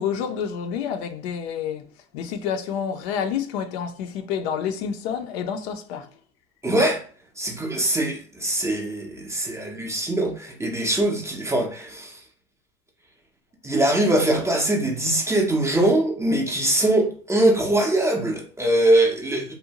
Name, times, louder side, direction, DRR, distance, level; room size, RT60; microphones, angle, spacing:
voice 1, 0.0-1.9 2.1-6.1 19.3-19.5, left 7 dB, 75° left, 0.5 m, -29 dB
voice 2, 6.6-7.0 7.4-12.1 13.6-19.5, right 1 dB, 10° right, 0.4 m, -22 dB
2.7 x 2.1 x 2.8 m
supercardioid pair, 105°, 32 cm